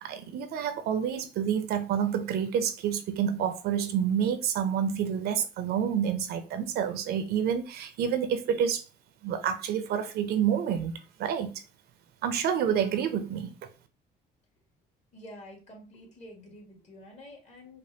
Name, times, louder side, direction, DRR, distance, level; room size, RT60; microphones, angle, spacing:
voice 1, 0.0-8.8 9.2-10.9 11.2-11.5 12.2-13.5, right 8 dB, 70° right, 0.6 m, -28 dB
voice 2, 15.1-17.8, left 1 dB, 40° left, 1.8 m, -48 dB
5.2 x 2.1 x 2.8 m
cardioid pair, 110°, 17 cm